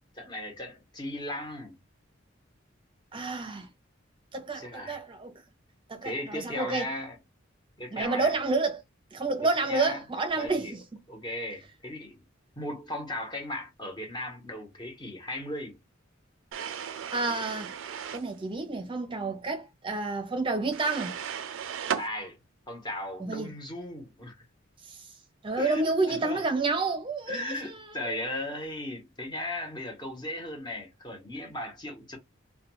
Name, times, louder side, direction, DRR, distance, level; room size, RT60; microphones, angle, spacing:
voice 1, 0.2-1.8 4.5-5.0 6.0-7.2 7.8-8.4 9.7-10.0 10.3-10.8 11.1-12.3 12.6-15.8 21.9-22.4 22.7-24.5 25.6-26.5 27.3-32.2, left 1 dB, 25° left, 0.9 m, -37 dB
voice 2, 3.1-3.7 4.3-5.3 5.9-6.9 7.9-8.8 9.1-11.0 17.1-17.7 18.1-21.1 23.2-23.5 24.9-25.0 25.4-27.8 28.0-28.2, right 3 dB, 25° right, 0.6 m, -29 dB
sound 1, 16.5-18.3 20.7-22.1, right 8 dB, 85° right, 0.4 m, -35 dB
2.3 x 2.2 x 3.0 m
head